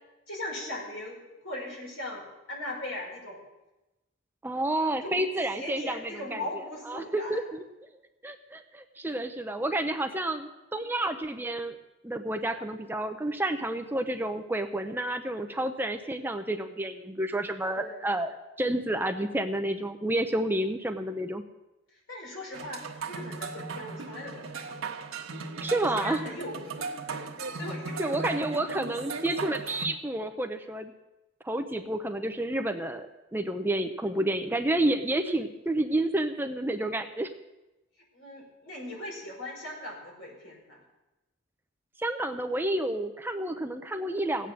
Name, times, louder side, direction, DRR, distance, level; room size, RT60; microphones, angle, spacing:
voice 1, 0.3-3.4 5.0-5.2 5.5-7.5 17.7-18.1 21.9-25.0 25.9-27.2 27.6-28.4 38.1-40.8, left 1 dB, 75° left, -2 dB, 5.5 m, -39 dB
voice 2, 4.4-6.4 6.9-7.6 8.2-11.8 12.0-21.4 25.6-26.2 28.0-30.9 31.4-37.3 42.0-44.5, right 1 dB, 10° right, 7 dB, 0.5 m, -30 dB
sound 1, 22.5-29.9, right 4 dB, 85° right, 1.3 m, -37 dB
16.0 x 9.0 x 6.4 m, 1.0 s
head